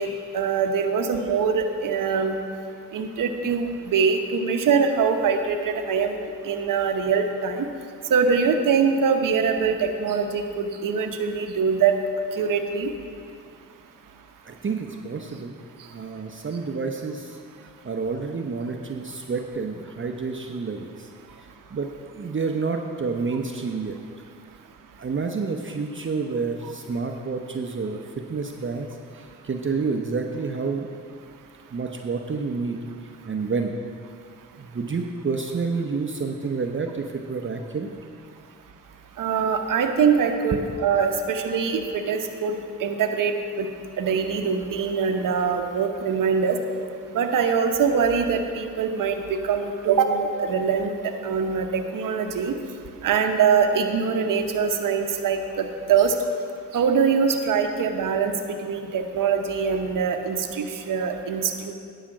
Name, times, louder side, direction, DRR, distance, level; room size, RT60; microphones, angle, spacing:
voice 1, 0.0-2.4 2.9-7.7 8.1-12.0 12.3-12.9 39.2-43.7 44.0-46.6 47.1-52.5 53.0-56.1 56.7-61.7, right 6 dB, 75° right, 5 dB, 0.9 m, -23 dB
voice 2, 14.4-15.6 15.9-17.4 17.8-21.1 21.7-24.0 25.0-30.9 31.7-32.8 33.3-33.8 34.6-37.9, right 4 dB, 35° right, 3 dB, 0.8 m, -29 dB
10.0 x 5.0 x 7.3 m, 2.2 s
supercardioid pair, 50°, 33 cm